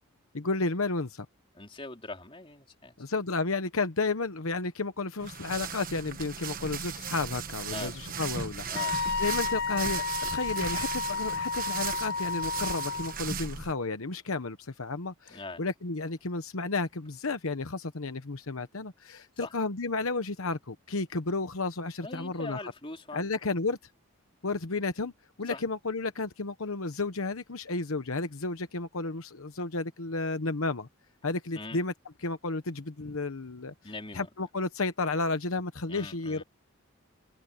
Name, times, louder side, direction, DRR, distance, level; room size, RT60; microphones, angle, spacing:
voice 1, 0.3-1.3 3.0-10.0 10.3-22.7 23.1-23.8 24.4-25.1 25.4-30.9 31.2-31.9 32.2-33.7 34.1-36.4, left 3 dB, 70° left, 1.1 m, -32 dB
voice 2, 1.5-3.0 7.7-7.9 8.7-9.0 15.3-15.6 19.4-19.5 22.0-23.3 25.5-25.6 31.6-31.8 33.8-34.3 35.9-36.4, left 2 dB, 25° left, 3.6 m, -42 dB
sound 1, 5.2-13.7, right 6 dB, 40° right, 1.3 m, -37 dB
Wind instrument woodwind instrument, 8.7-13.2, left 4 dB, 45° left, 0.6 m, -32 dB
head